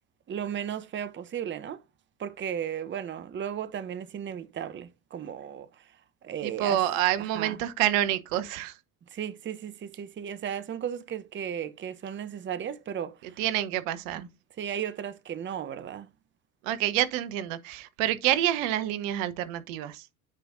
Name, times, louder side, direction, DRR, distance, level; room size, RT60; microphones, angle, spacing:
voice 1, 0.3-1.8 2.2-5.8 6.2-6.8 7.2-7.6 9.1-13.4 14.1-14.3 14.6-16.1, right 9 dB, 30° right, 0.8 m, -35 dB
voice 2, 6.4-8.7 13.4-14.3 16.6-20.1, right 12 dB, 65° right, 0.9 m, -27 dB
9.4 x 5.1 x 2.5 m
hypercardioid pair, 70°, 41 cm